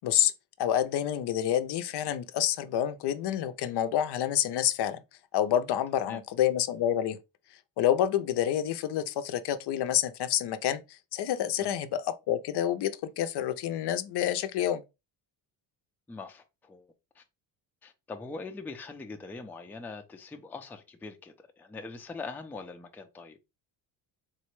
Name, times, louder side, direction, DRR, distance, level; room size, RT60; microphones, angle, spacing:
voice 1, 0.6-5.0 5.3-7.2 7.8-14.8, left 11 dB, 60° left, 0.5 m, -28 dB
voice 2, 16.1-16.9 17.1-17.2 17.8-23.4, left 3 dB, 5° left, 0.3 m, -42 dB
3.9 x 2.1 x 3.0 m
cardioid pair, 95°, 46 cm